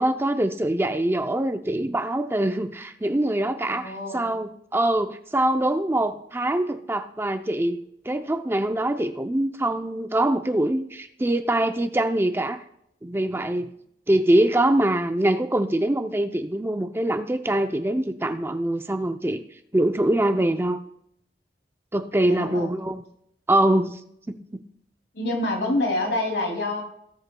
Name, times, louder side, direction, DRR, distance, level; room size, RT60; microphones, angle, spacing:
voice 1, 0.0-12.6 13.0-13.7 14.1-19.4 19.7-20.8 21.9-23.0 23.5-24.0 24.3-24.6, right 1 dB, 15° right, 8 dB, 0.4 m, -24 dB
voice 2, 3.7-4.4 22.3-22.8 25.1-26.8, left 2 dB, 75° left, 1 dB, 2.6 m, -27 dB
18.0 x 8.1 x 2.2 m, 0.74 s
head